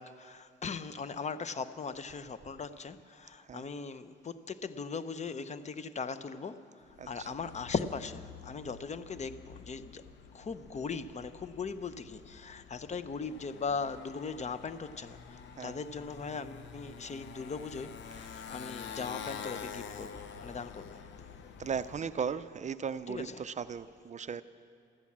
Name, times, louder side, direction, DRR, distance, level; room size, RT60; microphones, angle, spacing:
voice 1, 0.0-10.0 10.3-21.0 23.1-23.4, left 5 dB, 35° left, 13 dB, 0.7 m, -39 dB
Motorcycle, 6.9-22.3, left 7 dB, 70° left, 0.9 m, -48 dB
voice 2, 21.6-24.4, right 6 dB, 35° right, 13 dB, 0.4 m, -37 dB
14.5 x 13.5 x 7.4 m, 2.2 s
cardioid pair, 90°, 20 cm